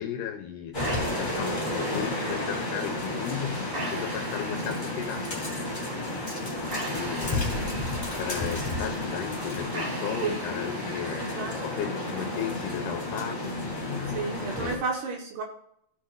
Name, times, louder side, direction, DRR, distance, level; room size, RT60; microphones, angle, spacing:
voice 1, 0.0-5.6 6.1-14.8, left 9 dB, 75° left, 2.0 m, -36 dB
sound 1, 0.7-14.8, left 1 dB, 15° left, 2.4 m, -32 dB
sound 2, 0.8-12.8, right 1 dB, 80° right, 5.2 m, -41 dB
voice 2, 11.1-11.6 14.1-15.4, right 4 dB, 65° right, 2.7 m, -32 dB
16.0 x 7.2 x 2.5 m
omnidirectional pair, 4.2 m